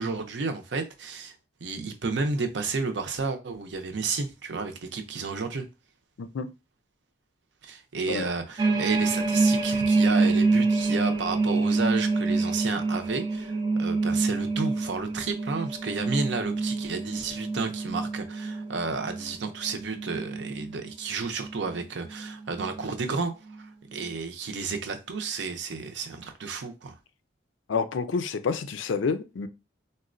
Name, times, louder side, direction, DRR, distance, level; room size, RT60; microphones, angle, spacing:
voice 1, 0.0-1.3 1.6-5.6 7.6-23.3 23.6-27.0, right 4 dB, 70° right, 0.6 m, -32 dB
sound 1, 8.6-20.9 21.4-21.7 22.1-22.9 23.5-23.6, right 3 dB, 25° right, 0.3 m, -26 dB
voice 2, 27.7-29.5, left 5 dB, 85° left, 0.4 m, -28 dB
4.0 x 2.1 x 2.5 m
head